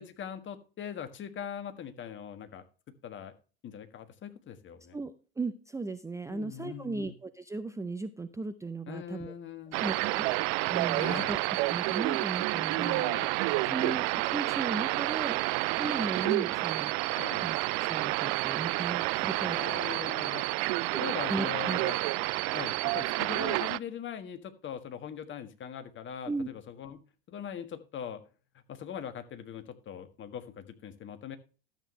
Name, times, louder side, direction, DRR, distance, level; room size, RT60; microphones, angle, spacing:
voice 1, 0.0-3.3 3.6-5.0 6.3-7.1 8.9-9.8 10.9-11.3 12.8-13.3 13.6-13.9 17.1-17.5 19.3-20.5 21.0-22.0 22.5-27.0 27.3-28.2 28.7-31.4, left 8 dB, 35° left, 9 dB, 1.6 m, -41 dB
voice 2, 4.9-9.3 9.8-11.4 11.7-13.0 13.7-15.4 15.7-16.9 17.4-19.6 20.9-21.0 21.3-21.8 26.3-26.5, right 3 dB, 10° right, 10 dB, 0.7 m, -36 dB
sound 1, 9.7-23.8, right 22 dB, 50° right, 0.4 m, -29 dB
12.5 x 8.1 x 3.2 m, 0.35 s
hypercardioid pair, 80°, 33 cm